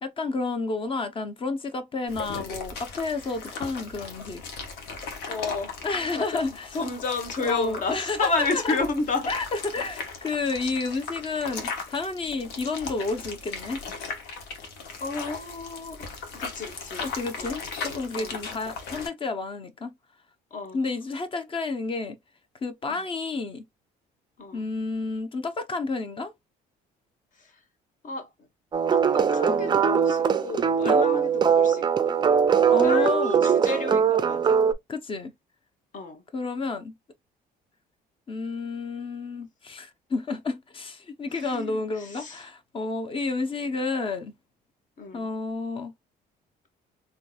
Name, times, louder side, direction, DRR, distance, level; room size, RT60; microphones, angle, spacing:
voice 1, 0.0-4.4 5.8-6.7 7.4-8.8 9.3-13.8 17.0-19.9 20.7-22.2 22.6-23.6 24.5-26.3 30.8-31.0 32.7-33.4 34.9-35.3 36.3-36.9 38.3-44.3 45.1-45.9, left 3 dB, 30° left, 0.7 m, -30 dB
sound 1, 2.1-19.1, left 4 dB, 85° left, 1.1 m, -38 dB
voice 2, 5.3-5.7 6.1-9.3 15.0-17.1 17.4-17.7 18.2-18.4 20.5-20.8 22.9-23.0 24.4-24.6 28.0-28.3 28.9-32.4 32.8-34.6 35.9-36.2 41.3-42.4 45.0-45.3, left 3 dB, 50° left, 1.2 m, -31 dB
sound 2, 28.7-34.7, right 7 dB, 25° right, 0.4 m, -21 dB
3.8 x 2.7 x 2.3 m
cardioid pair, 110°, 17 cm